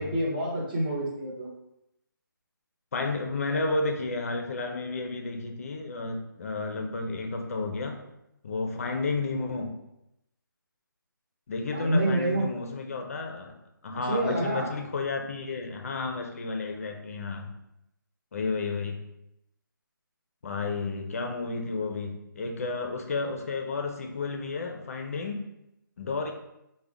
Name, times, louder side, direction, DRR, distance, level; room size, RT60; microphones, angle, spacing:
voice 1, 0.0-1.5 11.7-12.5 13.9-14.7, right 1 dB, 25° right, -4 dB, 0.9 m, -28 dB
voice 2, 2.9-8.0 8.4-9.7 11.5-13.6 13.8-17.5 18.3-19.0 20.4-25.4 26.0-26.3, left 3 dB, 40° left, 4 dB, 0.4 m, -32 dB
3.8 x 2.1 x 3.5 m, 0.85 s
hypercardioid pair, 165°, 12 cm